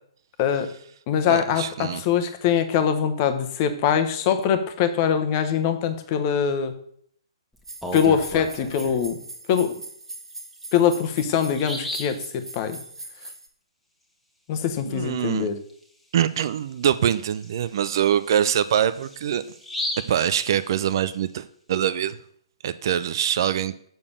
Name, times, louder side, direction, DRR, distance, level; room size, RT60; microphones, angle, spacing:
voice 1, 0.4-0.7 1.1-6.7 7.9-9.2 9.5-9.8 10.7-12.8 14.5-15.6, left 8 dB, 30° left, 8 dB, 1.1 m, -23 dB
voice 2, 1.3-2.0 14.9-15.5 16.1-19.4 20.1-22.2 22.6-23.7, right 9 dB, 45° right, 14 dB, 0.5 m, -24 dB
Bird vocalization bird call bird song, 7.6-9.1 10.5-10.6 11.1-11.2 11.5-12.2 15.7-15.8 16.2-16.3 16.9-21.1, left 1 dB, 5° left, 1.4 m, -35 dB
sound 1, 7.6-13.5, right 2 dB, 75° right, 1.8 m, -41 dB
7.0 x 6.7 x 6.6 m, 0.64 s
figure-of-eight pair, 125°, 3 cm